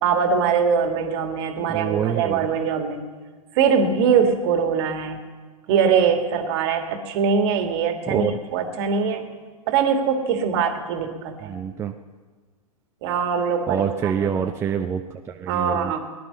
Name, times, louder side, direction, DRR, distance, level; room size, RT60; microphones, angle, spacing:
voice 1, 0.0-3.0 3.5-5.2 5.7-9.3 9.7-11.5 13.0-14.5 15.5-16.0, right 6 dB, 45° right, 6 dB, 1.7 m, -22 dB
voice 2, 1.7-2.5 8.1-8.4 11.4-11.9 13.7-16.0, right 8 dB, 15° right, 5 dB, 0.5 m, -26 dB
18.5 x 11.0 x 5.4 m, 1.4 s
figure-of-eight pair, 110°, 19 cm